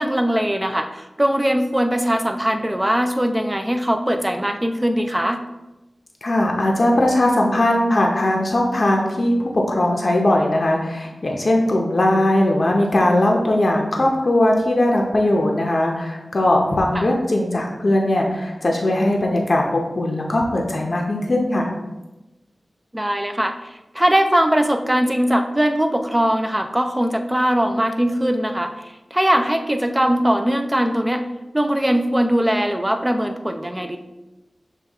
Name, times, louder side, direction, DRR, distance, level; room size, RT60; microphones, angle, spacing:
voice 1, 0.0-5.4 16.9-17.1 22.9-23.7 23.9-31.2 31.5-34.0, equal, 15° right, 6 dB, 0.4 m, -20 dB
voice 2, 6.2-21.8, left 1 dB, 55° left, 0 dB, 0.6 m, -19 dB
6.4 x 2.3 x 3.4 m, 1.0 s
wide cardioid pair, 80°, 0 cm